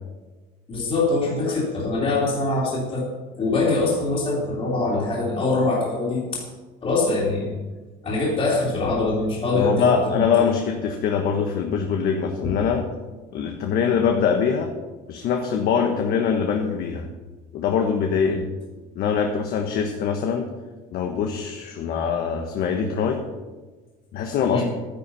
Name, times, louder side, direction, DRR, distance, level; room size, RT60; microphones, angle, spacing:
voice 1, 0.7-3.1 3.4-6.4 6.8-7.5 8.0-10.2 12.4-12.6 24.5-24.6, left 3 dB, 30° left, -5 dB, 3.0 m, -23 dB
voice 2, 9.6-12.8 13.3-14.7 15.1-17.1 17.5-18.5 18.9-20.5 20.9-23.2 24.1-24.6, left 6 dB, 55° left, 3 dB, 1.3 m, -23 dB
12.0 x 10.0 x 5.6 m, 1.3 s
cardioid pair, 140°, 19 cm